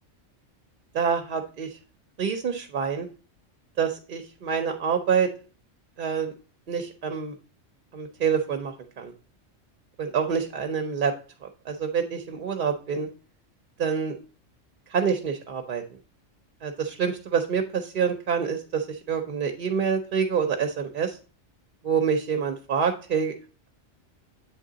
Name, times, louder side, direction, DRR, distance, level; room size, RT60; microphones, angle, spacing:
voice 1, 0.9-1.7 2.2-3.1 3.8-5.3 6.0-6.3 6.7-7.3 7.9-9.1 10.0-11.1 11.7-13.1 13.8-14.1 14.9-15.8 16.6-21.2 21.8-23.3, right 6 dB, 55° right, 5 dB, 0.6 m, -26 dB
7.9 x 3.7 x 3.7 m, 0.36 s
omnidirectional pair, 1.3 m